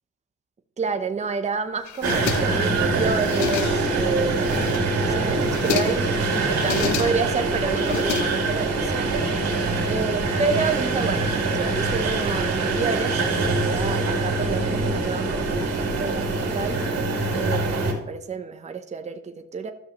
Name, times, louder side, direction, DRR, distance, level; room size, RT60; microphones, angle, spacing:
voice 1, 0.8-6.2 6.6-9.5 9.9-16.8 17.3-19.7, right 4 dB, 25° right, 7 dB, 0.8 m, -29 dB
sound 1, 1.9-2.7 3.1-4.0 4.4-5.0 5.4-6.1 6.5-7.4 7.8-8.7, left 11 dB, 70° left, 0.6 m, -31 dB
sound 2, 2.0-17.9, right 3 dB, 55° right, 2.3 m, -24 dB
13.0 x 6.3 x 3.0 m, 0.92 s
cardioid pair, 90°, 30 cm